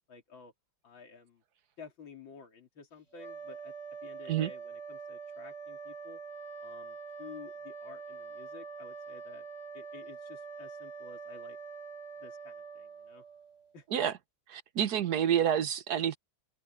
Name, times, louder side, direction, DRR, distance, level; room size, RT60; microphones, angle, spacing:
voice 1, 0.1-0.5 0.8-1.4 1.8-3.7 4.0-6.2 6.6-9.5 9.7-11.6 12.2-13.2 13.7-13.9, left 5 dB, 80° left, 3.7 m, -52 dB
sound 1, 3.1-13.7, right 5 dB, 35° left, 5.4 m, -45 dB
voice 2, 14.5-16.2, right 9 dB, 60° right, 1.6 m, -28 dB
open air
omnidirectional pair, 2.1 m